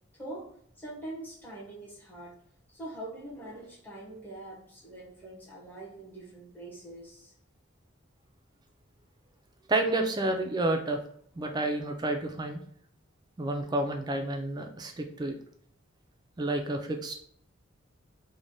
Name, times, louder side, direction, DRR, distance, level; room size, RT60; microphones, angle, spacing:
voice 1, 0.1-2.4 2.7-7.3, right 1 dB, 10° left, -7 dB, 0.9 m, -44 dB
voice 2, 9.7-11.0 11.4-12.6 13.4-15.4 16.4-17.2, right 2 dB, 20° right, 4 dB, 0.3 m, -30 dB
3.2 x 2.1 x 2.6 m, 0.64 s
head